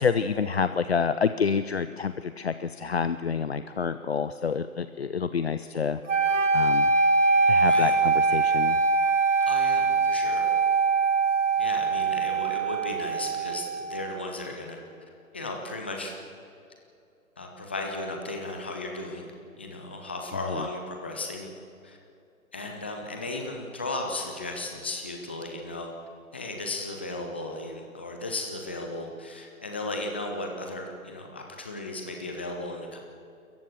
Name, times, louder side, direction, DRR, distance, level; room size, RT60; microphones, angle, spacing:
voice 1, 0.0-6.0 6.5-6.9 7.5-8.8, left 6 dB, 45° left, 12 dB, 0.6 m, -28 dB
sound 1, 6.1-14.2, right 4 dB, 60° right, 1.5 m, -23 dB
voice 2, 7.6-8.0 9.4-10.4 11.6-14.8 15.3-16.1 17.4-19.3 19.6-21.5 21.8-22.0 22.5-25.9 26.3-33.0, left 2 dB, 10° left, 2 dB, 0.6 m, -35 dB
27.0 x 14.5 x 7.7 m, 2.6 s
figure-of-eight pair, 140°, 43 cm